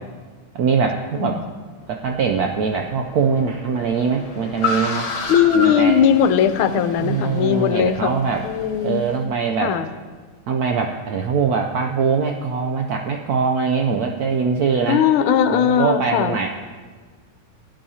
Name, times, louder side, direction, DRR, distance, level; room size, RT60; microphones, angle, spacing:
voice 1, 0.5-1.4 1.9-5.1 5.5-6.0 7.0-8.4 8.8-9.8 10.5-15.0 15.4-16.5, right 5 dB, 85° right, 3 dB, 0.8 m, -22 dB
Car, 1.8-9.2, left 3 dB, 55° left, 1.7 m, -31 dB
voice 2, 5.3-8.1 8.4-9.0 9.6-9.9 14.9-16.5, left 8 dB, 80° left, 11 dB, 1.5 m, -18 dB
17.0 x 10.5 x 2.8 m, 1.4 s
omnidirectional pair, 2.3 m